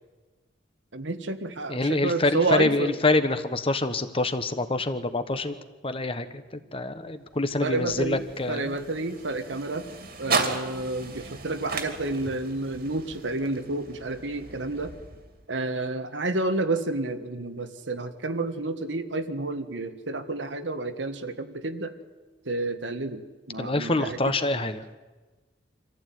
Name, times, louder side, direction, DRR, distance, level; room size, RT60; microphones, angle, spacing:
voice 1, 0.9-3.0 7.6-9.9 10.2-14.9 15.5-21.9 22.4-23.2 23.5-24.3, right 2 dB, 80° right, 8 dB, 1.6 m, -30 dB
voice 2, 1.7-5.5 5.8-6.3 6.5-8.7 23.6-24.8, left 2 dB, 30° left, 10 dB, 1.2 m, -26 dB
sound 1, 7.3-15.6, right 4 dB, 55° right, 2.5 m, -35 dB
25.0 x 15.0 x 9.3 m, 1.3 s
head